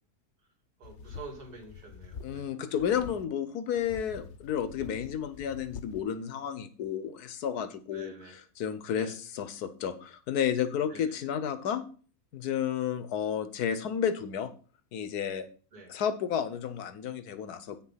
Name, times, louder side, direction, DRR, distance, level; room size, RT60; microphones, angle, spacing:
sound 1, 0.8-2.5 2.8-3.2 3.8-6.0, left 6 dB, 55° left, 0.9 m, -46 dB
voice 1, 0.8-2.8 7.9-8.4 8.9-9.2 10.9-11.2 15.7-15.9, right 3 dB, 80° right, 2 dB, 3.1 m, -48 dB
voice 2, 2.2-8.1 8.6-11.8 12.3-14.5 14.9-15.5 15.9-17.8, left 8 dB, 90° left, 12 dB, 1.4 m, -32 dB
8.9 x 6.5 x 5.7 m, 0.40 s
omnidirectional pair, 1.6 m